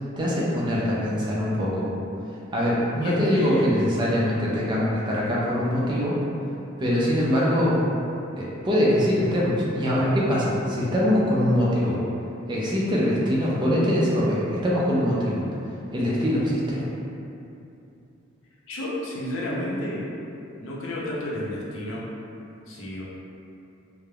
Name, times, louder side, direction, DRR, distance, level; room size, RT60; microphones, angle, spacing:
voice 1, 0.2-1.9 2.5-6.2 6.8-7.9 8.4-12.0 12.5-15.4 15.9-16.8, equal, 20° right, -6 dB, 0.4 m, -23 dB
voice 2, 3.0-3.7 18.7-20.0 20.6-22.0 22.7-23.0, left 1 dB, 80° left, -5 dB, 0.5 m, -31 dB
3.1 x 2.0 x 2.3 m, 2.7 s
head